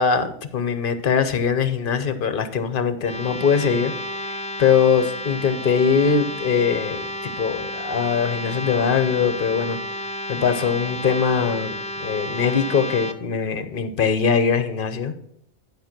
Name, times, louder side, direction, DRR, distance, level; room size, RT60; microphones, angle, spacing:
voice 1, 0.0-3.9 4.6-9.8 10.3-11.7 12.0-15.1, left 6 dB, 50° left, 10 dB, 1.0 m, -21 dB
sound 1, 3.0-13.1, equal, 10° left, 0.4 m, -32 dB
10.5 x 5.3 x 5.9 m, 0.72 s
omnidirectional pair, 1.2 m